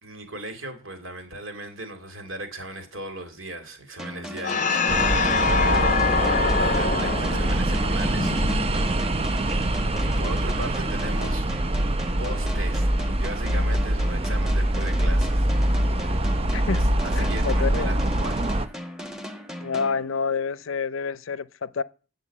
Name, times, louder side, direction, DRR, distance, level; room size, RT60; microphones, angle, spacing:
voice 1, 0.0-5.3 5.6-8.4 10.0-11.5 12.2-12.9 13.2-15.5 16.0-16.3 16.7-18.6, right 1 dB, 80° right, 2.8 m, -37 dB
sound 1, 4.0-20.6, equal, 5° right, 1.1 m, -38 dB
sound 2, 4.4-9.2, left 4 dB, 40° left, 0.6 m, -25 dB
sound 3, 4.9-18.7, right 1 dB, 30° right, 0.6 m, -24 dB
voice 2, 5.5-6.0 10.0-10.6 16.5-16.8 17.1-17.9 19.6-21.8, left 5 dB, 80° left, 0.5 m, -29 dB
8.7 x 7.1 x 8.5 m
head